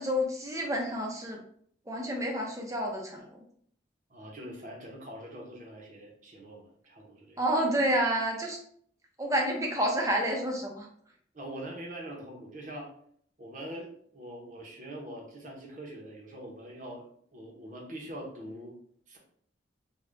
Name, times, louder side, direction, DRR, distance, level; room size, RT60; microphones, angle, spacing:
voice 1, 0.0-1.4 1.9-3.4 7.4-8.6 9.2-10.9, equal, 15° right, 0 dB, 0.7 m, -29 dB
voice 2, 4.1-7.4 11.3-12.9 13.4-17.1 17.3-18.7 19.1-19.2, right 1 dB, 45° right, -1 dB, 0.9 m, -43 dB
3.7 x 2.4 x 3.3 m, 0.62 s
head